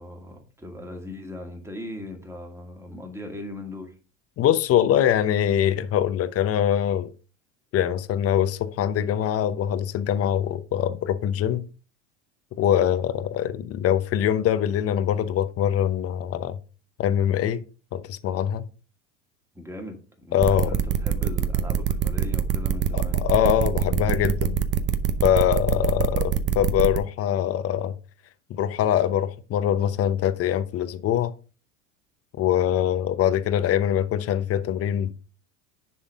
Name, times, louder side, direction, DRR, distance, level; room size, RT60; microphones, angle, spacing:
voice 1, 0.0-4.0 19.6-23.2, left 1 dB, 5° right, 2.0 m, -39 dB
voice 2, 4.4-7.1 7.7-11.7 12.6-16.6 17.0-17.6 17.9-18.6 20.3-20.7 22.9-24.6 25.2-27.9 28.5-31.3 32.4-35.1, left 10 dB, 40° left, 0.9 m, -23 dB
sound 1, 20.4-27.0, right 9 dB, 30° right, 0.8 m, -24 dB
10.5 x 3.8 x 3.6 m
supercardioid pair, 100°, 36 cm